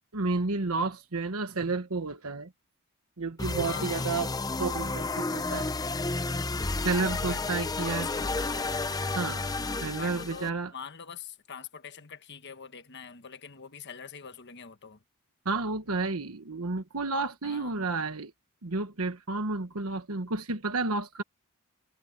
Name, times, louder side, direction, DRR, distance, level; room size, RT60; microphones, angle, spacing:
voice 1, 0.1-2.5 3.2-4.3 4.6-5.7 6.8-8.1 9.1-9.4 9.8-10.7 15.4-18.3 18.6-21.2, right 3 dB, 75° right, 1.3 m, -31 dB
sound 1, 3.4-10.5, left 3 dB, 15° left, 0.7 m, -31 dB
voice 2, 3.6-4.2 7.0-8.7 9.8-15.0 17.4-17.9, left 6 dB, 50° left, 1.4 m, -44 dB
head